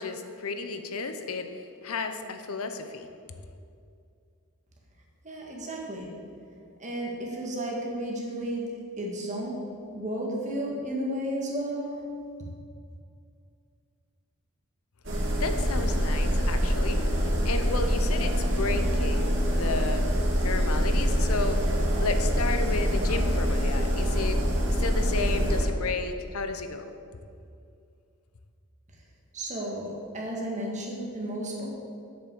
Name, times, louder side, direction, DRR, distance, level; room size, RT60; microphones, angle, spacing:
voice 1, 0.0-3.1 15.4-17.0 17.4-20.1 20.4-21.6 22.0-24.4 24.8-26.9, left 3 dB, 75° left, 8 dB, 0.8 m, -32 dB
voice 2, 5.2-6.1 6.8-8.7 9.0-9.6 9.9-12.0 29.3-31.7, right 1 dB, 35° right, -2 dB, 1.9 m, -33 dB
sound 1, 15.0-25.7, equal, 55° right, 2.2 m, -25 dB
7.9 x 7.0 x 7.8 m, 2.4 s
head